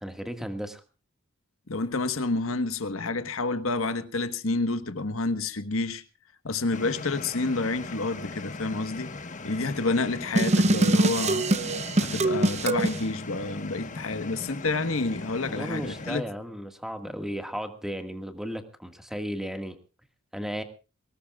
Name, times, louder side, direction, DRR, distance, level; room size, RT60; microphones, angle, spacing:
voice 1, 0.0-0.8 15.5-19.8 20.3-20.6, equal, ahead, 1.8 m, -35 dB
voice 2, 1.7-6.0 6.4-9.1 9.4-11.5 12.0-16.2, left 3 dB, 75° left, 1.4 m, -29 dB
sound 1, 6.7-16.2, left 3 dB, 40° left, 1.3 m, -39 dB
sound 2, 10.4-13.0, right 2 dB, 35° right, 0.8 m, -23 dB
23.5 x 19.0 x 2.4 m
head